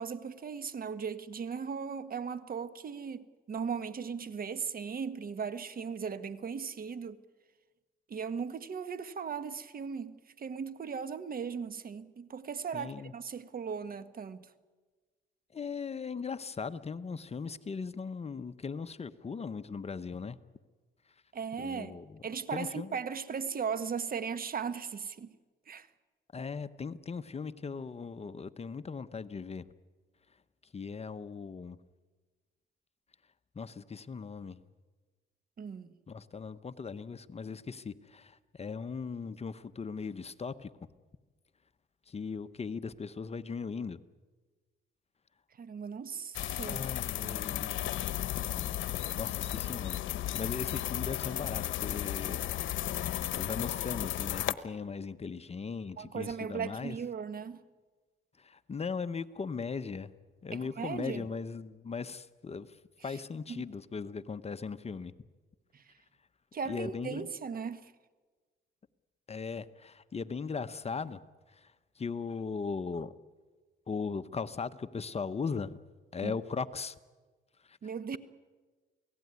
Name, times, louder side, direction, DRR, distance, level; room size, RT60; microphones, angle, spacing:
voice 1, 0.0-7.2 8.1-14.5 21.3-22.0 22.2-25.3 25.7-25.9 35.6-36.0 45.6-46.8 47.2-47.4 56.0-57.6 60.5-61.3 63.5-63.6 65.7-65.9 66.5-67.9 76.2-76.4 77.8-78.2, right 6 dB, 45° right, 1.4 m, -37 dB
voice 2, 12.7-13.1 15.5-20.4 21.6-22.2 22.5-23.0 26.3-29.7 30.7-31.8 33.5-34.6 36.1-40.7 42.1-44.0 46.7-47.8 48.6-48.7 49.2-50.0 50.3-53.0 53.3-57.0 58.4-60.1 60.4-65.1 66.7-67.3 69.3-71.2 71.5-73.1 73.9-75.8 76.1-77.0 77.6-77.8, left 5 dB, 30° left, 1.0 m, -38 dB
sound 1, 46.3-54.5, left 13 dB, 75° left, 1.0 m, -34 dB
28.5 x 18.0 x 9.6 m
cardioid pair, 90°, 20 cm